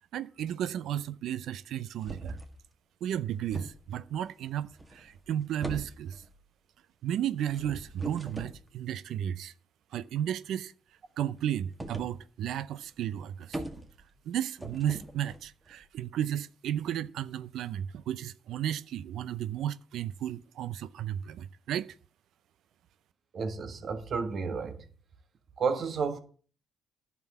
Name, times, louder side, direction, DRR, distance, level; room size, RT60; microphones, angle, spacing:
voice 1, 0.1-2.4 3.0-6.2 7.0-9.5 9.9-10.7 11.2-13.6 14.3-21.9, right 10 dB, 80° right, 0.5 m, -33 dB
sound 1, 2.0-2.6 3.1-4.1 4.7-5.3 5.6-6.4 7.4-8.6 11.8-12.2 12.5-12.6 12.9-13.0 13.2-14.2 14.6-15.9, right 1 dB, 15° right, 1.9 m, -41 dB
voice 2, 23.3-24.8 25.6-26.2, right 5 dB, 50° right, 1.5 m, -31 dB
11.0 x 6.1 x 8.4 m
cardioid pair, 115°, 0 cm